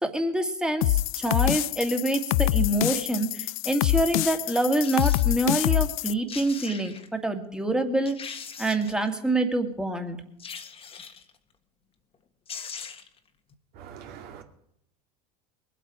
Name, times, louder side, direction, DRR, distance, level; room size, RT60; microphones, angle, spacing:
voice 1, 0.0-8.2 8.6-10.2, right 1 dB, 5° right, 5 dB, 2.2 m, -26 dB
sound 1, 0.8-6.1, left 17 dB, 60° left, 0.4 m, -25 dB
sound 2, 4.8-5.3 6.0-6.1 6.3-7.1 7.6-7.7 8.1-9.1 10.4-11.3 12.1-12.2 12.5-13.2 13.5-13.6, left 6 dB, 30° left, 1.7 m, -40 dB
voice 2, 13.8-14.4, right 8 dB, 50° right, 4 dB, 2.3 m, -43 dB
22.0 x 8.3 x 5.0 m, 0.73 s
hypercardioid pair, 80°, 20 cm